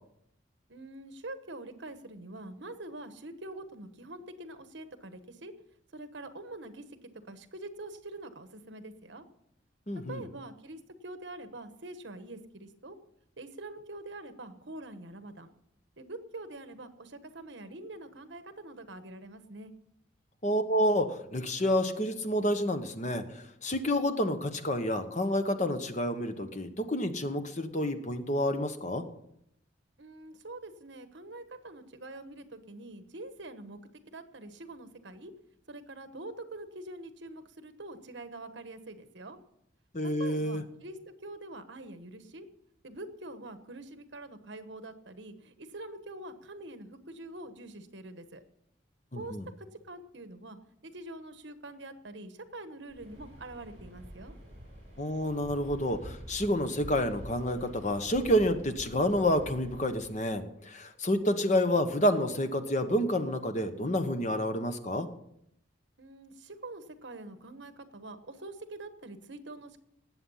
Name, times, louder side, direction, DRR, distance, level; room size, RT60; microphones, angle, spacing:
voice 1, 0.7-5.5 5.9-6.8 7.3-9.2 10.1-13.0 13.4-15.5 16.0-19.7 30.0-33.8 34.1-35.3 35.7-39.4 40.2-42.5 42.8-48.4 49.1-49.4 49.9-50.6 50.8-54.3 66.0-69.8, right 2 dB, 70° right, 10 dB, 1.2 m, -45 dB
voice 2, 9.9-10.2 20.4-29.0 39.9-40.6 49.1-49.5 55.0-65.1, equal, 40° left, 8 dB, 1.1 m, -29 dB
Waves surf, 52.9-60.2, equal, 35° right, 6.9 m, -47 dB
19.0 x 7.8 x 5.6 m, 0.75 s
head